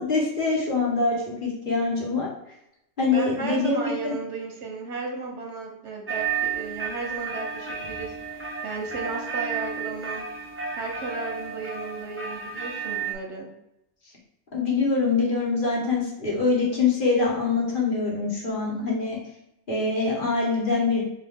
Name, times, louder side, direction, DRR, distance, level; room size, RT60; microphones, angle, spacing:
voice 1, 0.0-2.3 3.0-4.1 14.5-19.2 19.7-21.0, left 4 dB, 50° left, -4 dB, 1.4 m, -24 dB
voice 2, 3.0-10.2 10.8-13.5, right 3 dB, 80° right, 1 dB, 1.2 m, -34 dB
sound 1, 6.1-13.1, right 6 dB, 20° right, 0.3 m, -32 dB
4.1 x 3.1 x 3.6 m, 0.84 s
omnidirectional pair, 1.2 m